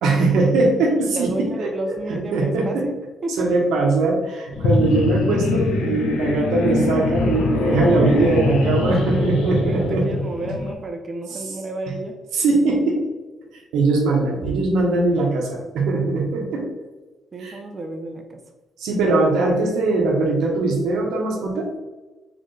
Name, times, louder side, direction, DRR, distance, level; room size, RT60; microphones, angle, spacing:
voice 1, 0.0-1.7 2.3-2.9 3.4-10.1 11.3-11.4 12.3-13.0 13.7-16.6 17.4-17.6 18.8-21.7, right 3 dB, 85° right, 0 dB, 1.2 m, -20 dB
voice 2, 1.1-3.0 3.2-3.5 8.8-12.2 15.1-15.9 17.3-18.4, right 2 dB, 40° right, 5 dB, 0.8 m, -32 dB
sound 1, 4.5-10.7, left 3 dB, 80° left, 0.9 m, -22 dB
4.4 x 3.4 x 3.3 m, 1.2 s
cardioid pair, 90°, 0 cm